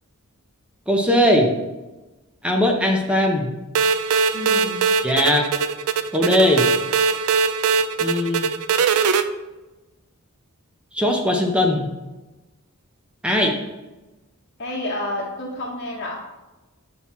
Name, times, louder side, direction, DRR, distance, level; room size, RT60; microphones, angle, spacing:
voice 1, 0.9-1.5 2.4-3.5 5.0-5.5 6.1-6.7 8.0-8.5 10.9-11.9 13.2-13.6, left 1 dB, 5° right, 1 dB, 0.7 m, -19 dB
sound 1, 3.7-9.2, right 5 dB, 90° right, 0.5 m, -21 dB
voice 2, 4.3-4.8 14.6-16.2, left 1 dB, 50° left, -4 dB, 1.1 m, -29 dB
7.7 x 5.9 x 4.3 m, 1.1 s
head